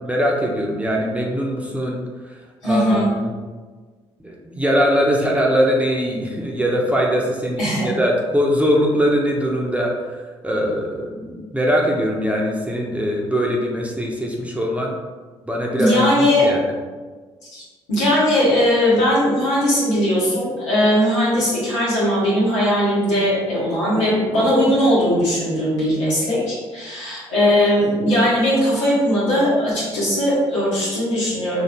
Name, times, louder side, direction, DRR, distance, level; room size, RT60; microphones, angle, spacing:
voice 1, 0.0-2.0 2.6-3.3 4.2-9.9 10.4-14.9 15.5-16.7, equal, 10° right, -2 dB, 0.8 m, -21 dB
voice 2, 2.6-3.1 7.6-7.9 15.8-16.5 17.5-17.6 17.9-31.6, equal, 85° left, -9 dB, 1.2 m, -19 dB
4.2 x 2.8 x 2.9 m, 1.4 s
figure-of-eight pair, 45°, 15 cm